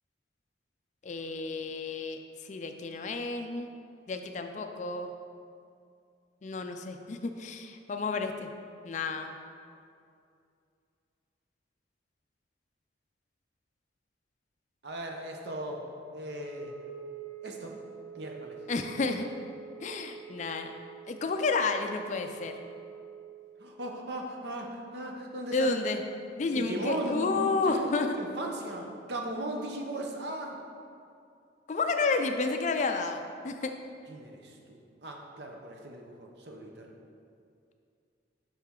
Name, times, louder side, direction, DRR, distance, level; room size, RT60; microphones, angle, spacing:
voice 1, 1.0-3.7 4.1-5.1 6.4-8.5 8.8-9.3 18.7-19.3 19.8-20.7 21.1-22.5 25.5-26.0 26.4-28.1 31.7-33.7, left 3 dB, 40° left, 6 dB, 0.3 m, -31 dB
voice 2, 14.8-15.8 16.1-16.7 17.4-17.8 18.2-18.6 23.6-25.7 26.5-30.6 34.1-36.9, right 1 dB, 60° right, 1 dB, 0.8 m, -37 dB
Wind instrument woodwind instrument, 16.3-23.4, right 7 dB, 5° left, 1.0 m, -46 dB
7.2 x 5.7 x 3.7 m, 2.5 s
head